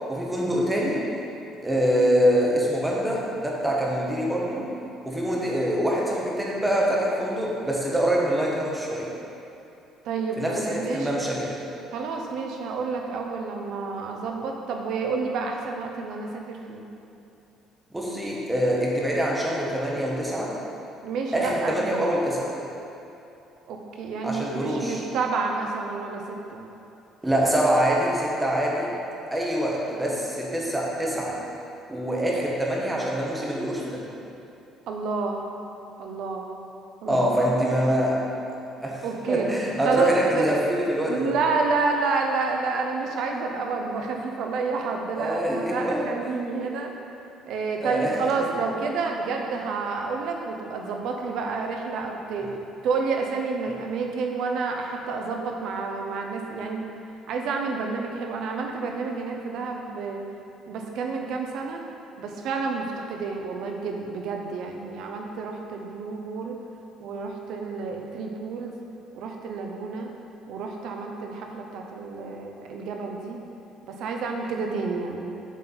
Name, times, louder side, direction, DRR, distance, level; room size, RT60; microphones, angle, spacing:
voice 1, 0.1-1.1 1.6-4.7 5.1-9.1 10.4-11.6 17.9-20.6 21.3-22.6 24.2-25.0 27.2-29.0 29.3-31.4 31.9-34.1 37.1-38.2 38.8-41.3 45.2-46.1 47.8-48.5 52.4-52.5, equal, 5° right, -3 dB, 0.8 m, -25 dB
voice 2, 10.0-11.3 11.9-16.8 21.0-21.9 23.7-26.7 34.9-35.5 36.0-36.5 37.0-37.5 39.0-39.5 39.8-40.5 41.1-46.9 47.5-52.5 52.8-56.8 57.3-60.2 60.7-61.8 62.2-66.6 67.0-68.7 69.1-70.1 70.5-73.4 73.8-75.3, right 4 dB, 55° right, 2 dB, 0.7 m, -29 dB
7.2 x 4.3 x 4.0 m, 2.8 s
cardioid pair, 175°, 0 cm